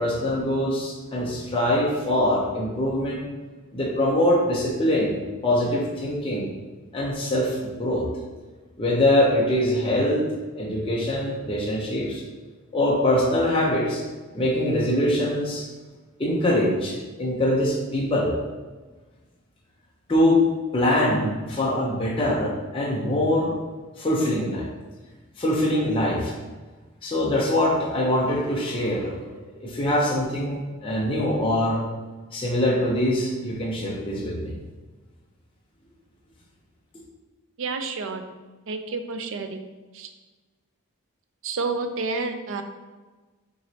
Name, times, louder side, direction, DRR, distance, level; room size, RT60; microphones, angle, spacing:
voice 1, 0.0-3.2 3.7-5.2 5.4-6.5 6.9-8.0 8.8-10.2 10.5-12.2 12.7-14.0 14.3-15.7 16.2-18.3 20.1-20.4 20.7-23.5 24.0-24.7 25.4-26.3 27.0-29.1 29.4-31.8 32.3-34.5, left 1 dB, 25° left, -5 dB, 0.7 m, -23 dB
voice 2, 37.6-38.2 38.7-39.6 39.9-40.1 41.4-42.6, right 4 dB, 60° right, 7 dB, 0.4 m, -29 dB
6.3 x 3.0 x 2.8 m, 1.3 s
head